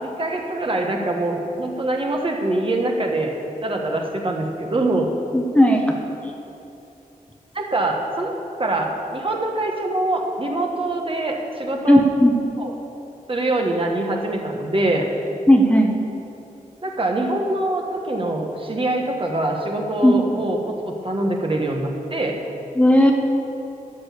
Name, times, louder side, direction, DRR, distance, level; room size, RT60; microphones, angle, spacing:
voice 1, 0.0-3.3 3.6-5.1 7.5-8.3 8.6-12.0 12.6-12.7 13.3-15.0 16.8-22.4, right 2 dB, 40° right, 1 dB, 1.4 m, -24 dB
voice 2, 5.3-6.0 11.9-12.3 15.5-15.9 20.0-20.4 22.7-23.1, equal, 10° left, 1 dB, 1.0 m, -15 dB
12.5 x 6.3 x 8.5 m, 2.9 s
wide cardioid pair, 125°, 14 cm